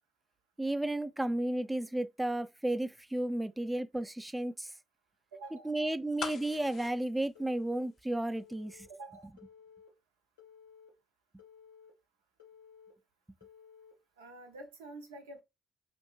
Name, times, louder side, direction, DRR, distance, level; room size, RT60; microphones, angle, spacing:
voice 1, 0.6-4.7 5.7-8.9, right 1 dB, 10° right, 0.4 m, -33 dB
voice 2, 5.3-5.8 8.9-9.3 14.2-15.4, right 2 dB, 80° right, 0.5 m, -48 dB
sound 1, 6.2-8.2 8.5-8.6, left 7 dB, 60° left, 0.4 m, -42 dB
Telephone, 6.3-6.9 7.3-7.9 8.4-8.9 9.4-9.9 10.4-10.9 11.4-11.9 12.4-12.9 13.4-13.9, left 7 dB, 90° left, 0.7 m, -56 dB
2.7 x 2.5 x 2.9 m
hypercardioid pair, 45°, 0 cm